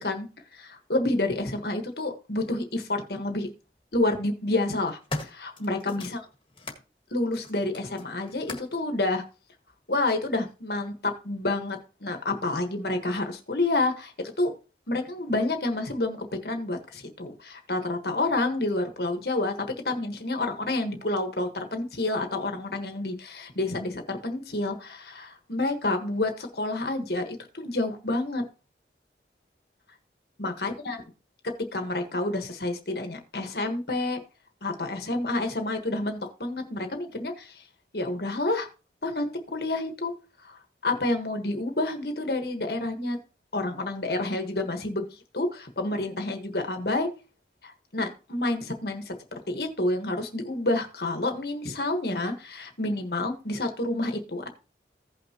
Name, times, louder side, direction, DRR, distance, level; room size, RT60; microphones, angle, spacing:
voice 1, 0.0-3.5 3.9-6.2 7.1-9.2 9.9-14.5 14.9-28.4 30.4-31.0 31.7-34.2 34.6-37.6 37.9-38.7 39.0-40.1 40.4-43.2 43.5-47.1 47.6-54.5, left 2 dB, 65° left, 6 dB, 1.5 m, -29 dB
sound 1, 2.5-2.6 3.7-4.0 4.6-6.9 7.3-8.8 9.7-9.8, left 2 dB, 30° left, 1.7 m, -39 dB
16.0 x 5.8 x 3.0 m, 0.32 s
head